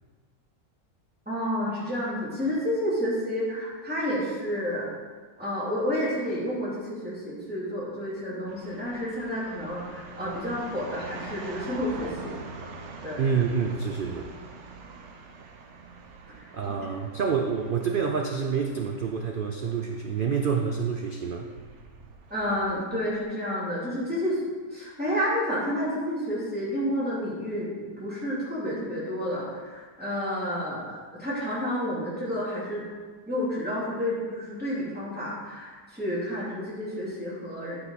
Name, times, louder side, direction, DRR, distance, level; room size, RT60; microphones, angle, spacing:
voice 1, 1.3-4.9 5.4-12.4 13.0-13.2 22.3-24.4 24.7-32.8 33.3-37.8, equal, 5° right, -8 dB, 2.7 m, -30 dB
sound 1, 8.5-23.2, right 3 dB, 55° right, 1.0 m, -45 dB
voice 2, 13.2-14.3 16.5-21.5, right 6 dB, 85° right, 3 dB, 0.4 m, -27 dB
10.0 x 5.6 x 4.1 m, 1.5 s
omnidirectional pair, 1.6 m